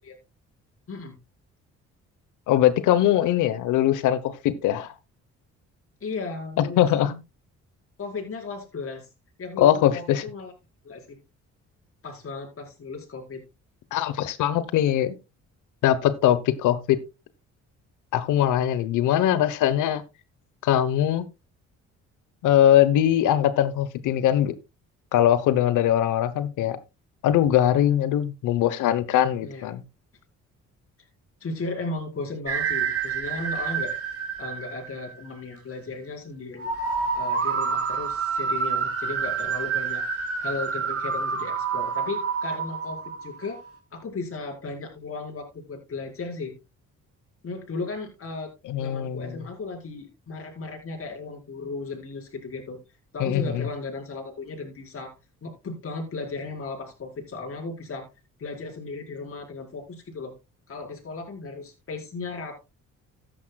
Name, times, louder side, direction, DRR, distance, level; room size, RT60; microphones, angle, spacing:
voice 1, 2.5-4.9 6.6-7.1 9.6-10.2 13.9-15.1 15.8-17.0 18.1-20.0 20.6-21.3 22.4-24.5 25.1-26.8 27.2-29.8 48.7-49.4 53.2-53.7, left 11 dB, 90° left, 1.1 m, -21 dB
voice 2, 6.0-7.2 8.0-9.1 9.4-10.5 10.8-11.2 12.0-13.4 29.4-29.7 31.4-33.9 34.4-36.7 37.1-43.6 43.9-46.5 47.4-52.8 53.1-55.1 55.4-58.1 58.4-60.3 60.7-62.6, left 3 dB, 45° left, 5.0 m, -35 dB
sound 1, 32.5-35.3 36.6-43.7, right 6 dB, 50° right, 2.7 m, -28 dB
14.0 x 10.5 x 2.3 m
cardioid pair, 90°, 30 cm